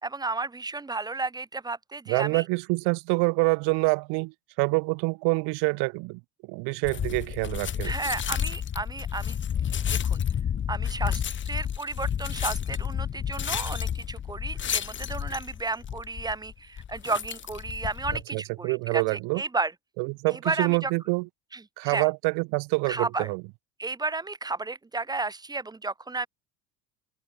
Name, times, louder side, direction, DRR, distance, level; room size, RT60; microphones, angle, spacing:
voice 1, 0.0-2.4 7.8-10.2 10.7-19.7 20.3-20.9 21.5-22.1 22.9-23.3 23.8-26.3, right 3 dB, 10° right, 0.8 m, -33 dB
voice 2, 2.1-6.2 6.5-7.9 18.3-19.4 20.0-21.3 21.8-23.4, right 29 dB, 75° right, 1.0 m, -26 dB
sound 1, 6.8-18.2, left 8 dB, 30° left, 1.4 m, -30 dB
cardioid pair, 130°, 40 cm